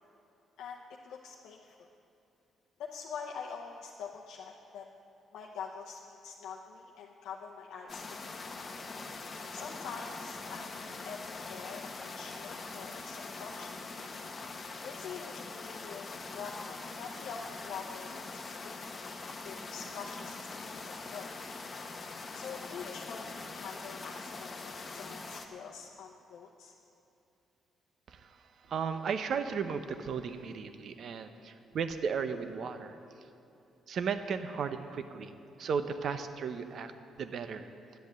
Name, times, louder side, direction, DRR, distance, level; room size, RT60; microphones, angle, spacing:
voice 1, 0.6-1.9 2.8-4.9 5.3-8.5 9.5-10.8 11.0-13.8 14.8-18.6 18.8-19.2 19.4-20.3 20.7-21.3 22.3-26.7, left 6 dB, 80° left, -1 dB, 0.7 m, -45 dB
sound 1, 7.9-25.5, left 3 dB, 35° left, 1.0 m, -43 dB
voice 2, 28.7-33.0 33.9-35.3 35.6-36.9 37.2-37.7, right 6 dB, 60° right, 10 dB, 0.7 m, -35 dB
10.5 x 8.2 x 7.5 m, 2.8 s
cardioid pair, 90°, 0 cm